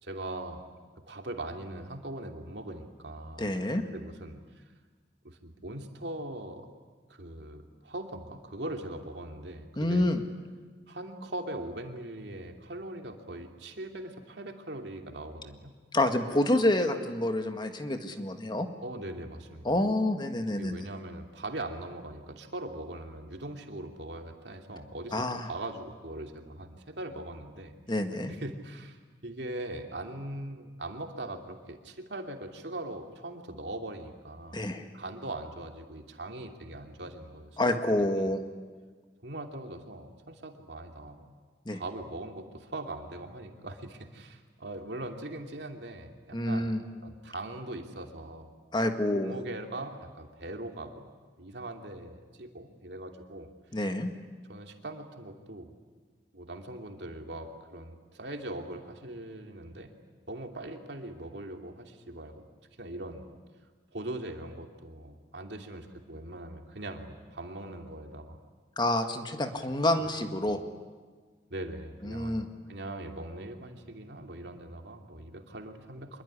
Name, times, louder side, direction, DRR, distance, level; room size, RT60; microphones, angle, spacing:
voice 1, 0.0-0.6 1.1-3.5 3.9-4.7 5.2-6.7 7.1-10.1 10.9-15.7 18.8-19.8 20.5-27.8 28.3-34.6 34.9-38.3 39.2-41.3 41.7-46.7 47.0-48.5 49.1-51.1 51.4-53.5 54.5-55.7 56.3-59.9 60.3-62.5 62.8-63.3 63.9-68.4 70.0-70.1 71.5-76.2, right 1 dB, 70° right, 3 dB, 2.8 m, -41 dB
voice 2, 3.4-3.8 9.8-10.2 15.9-18.7 19.6-20.9 25.1-25.5 27.9-28.3 34.5-34.8 37.6-38.4 41.7-41.8 46.3-46.8 48.7-49.3 53.7-54.1 68.8-70.6 72.0-72.5, left 1 dB, 25° left, 6 dB, 1.8 m, -28 dB
25.5 x 22.0 x 9.9 m, 1.4 s
head